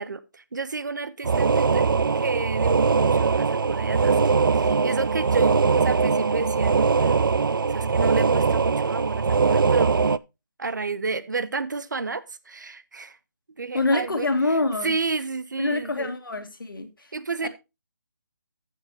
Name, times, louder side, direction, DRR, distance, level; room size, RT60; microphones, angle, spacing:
voice 1, 0.0-1.9 2.1-7.3 7.7-10.0 10.6-13.2 13.6-14.3 14.8-16.1 17.1-17.5, right 4 dB, 65° right, 0.9 m, -31 dB
sound 1, 1.2-10.2, right 5 dB, 85° right, 0.5 m, -21 dB
voice 2, 13.7-15.0 15.6-17.1 17.4-17.5, left 2 dB, 85° left, 2.2 m, -25 dB
14.5 x 6.4 x 2.9 m
hypercardioid pair, 180°, 11 cm